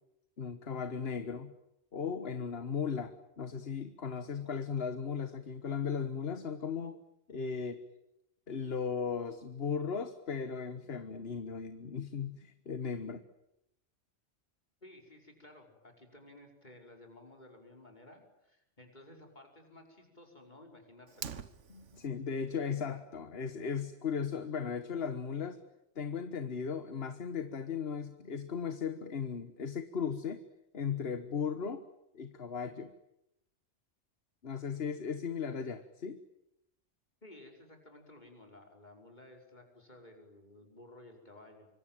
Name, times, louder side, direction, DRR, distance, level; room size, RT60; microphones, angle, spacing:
voice 1, 0.4-1.5 1.9-7.0 7.3-7.8 8.5-13.2 21.7-25.6 25.9-30.4 30.7-31.8 32.1-32.9 34.4-36.2, left 6 dB, 55° left, 10 dB, 1.5 m, -37 dB
voice 2, 14.8-21.4 37.2-41.7, left 1 dB, 40° left, 2 dB, 5.8 m, -55 dB
Fire, 21.1-22.1, right 7 dB, 90° right, 1.6 m, -44 dB
26.0 x 24.5 x 9.1 m, 0.84 s
omnidirectional pair, 1.2 m